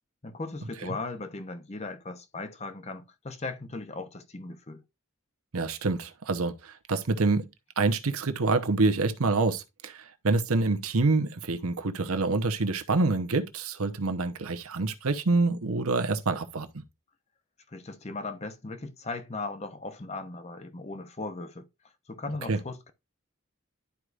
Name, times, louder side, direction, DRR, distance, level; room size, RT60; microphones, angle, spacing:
voice 1, 0.2-4.8 17.7-21.7 22.1-22.9, left 3 dB, 30° left, 0.7 m, -38 dB
voice 2, 5.5-7.5 7.8-16.7 22.5-22.6, right 3 dB, 85° right, 0.9 m, -26 dB
11.5 x 4.7 x 2.5 m
head